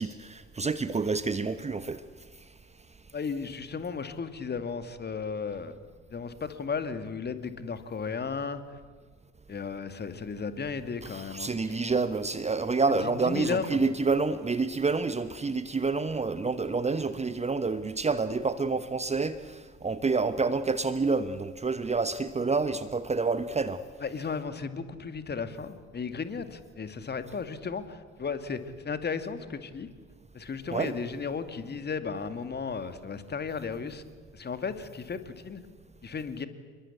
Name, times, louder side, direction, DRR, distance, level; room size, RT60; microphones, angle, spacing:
voice 1, 0.0-2.0 11.0-23.8 30.7-30.9, right 4 dB, 20° right, 1.2 m, -28 dB
voice 2, 3.1-5.8 6.1-8.6 9.5-11.5 13.2-13.8 24.0-29.9 30.3-34.0 34.3-35.6 36.0-36.5, left 5 dB, 30° left, 2.4 m, -34 dB
28.5 x 22.0 x 8.6 m
figure-of-eight pair, 55°, 35 cm